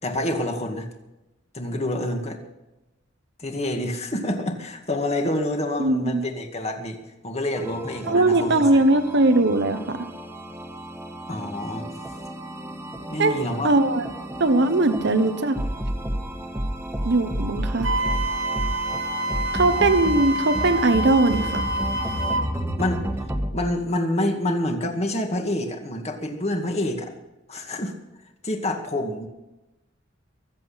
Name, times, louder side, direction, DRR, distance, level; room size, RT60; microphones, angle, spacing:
voice 1, 0.0-0.9 1.5-2.4 3.4-7.0 7.2-8.8 11.3-11.9 13.1-13.7 22.8-23.0 23.5-27.1 27.5-27.9 28.4-29.3, left 1 dB, 35° left, 4 dB, 2.2 m, -27 dB
voice 2, 5.8-6.3 8.1-10.1 13.2-13.3 13.6-14.0 14.4-15.6 17.0-17.9 19.5-21.7, right 2 dB, 60° right, 9 dB, 1.1 m, -20 dB
sound 1, 7.6-23.5, right 1 dB, 10° right, 1.6 m, -31 dB
Wind instrument woodwind instrument, 17.8-22.5, right 1 dB, 75° right, 2.2 m, -27 dB
23.0 x 8.4 x 5.7 m, 1.0 s
head